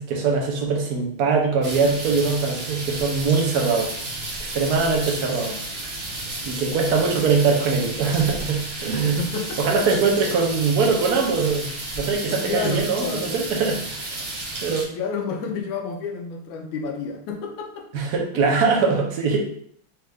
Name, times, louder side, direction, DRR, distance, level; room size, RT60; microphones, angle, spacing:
voice 1, 0.0-3.9 4.4-5.5 6.4-9.2 9.6-11.7 12.0-14.1 14.6-14.9 17.9-19.4, right 4 dB, 65° right, 0 dB, 1.1 m, -22 dB
sound 1, 1.6-14.8, right 2 dB, 45° right, 0.8 m, -32 dB
voice 2, 5.2-5.6 7.5-7.9 9.0-9.8 12.3-13.3 14.9-18.2, left 5 dB, 75° left, 2 dB, 1.4 m, -31 dB
4.3 x 2.5 x 3.4 m, 0.64 s
omnidirectional pair, 2.3 m